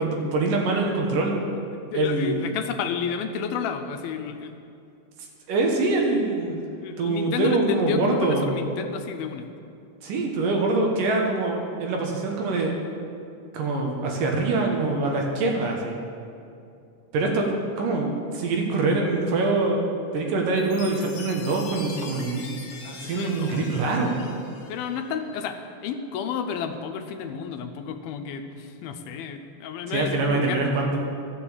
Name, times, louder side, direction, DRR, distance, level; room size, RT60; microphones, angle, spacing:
voice 1, 0.0-1.4 1.9-2.5 5.5-6.6 7.0-8.6 10.0-12.7 13.5-16.0 17.1-19.8 20.1-22.4 22.8-24.2 29.9-31.0, right 3 dB, 70° right, 1 dB, 2.6 m, -24 dB
voice 2, 1.7-4.5 6.8-9.5 22.0-22.1 23.0-23.6 24.7-30.6, left 6 dB, 80° left, 6 dB, 2.5 m, -31 dB
Chime, 20.6-25.2, left 4 dB, 65° left, 2.6 m, -42 dB
14.0 x 6.8 x 7.2 m, 2.6 s
omnidirectional pair, 4.3 m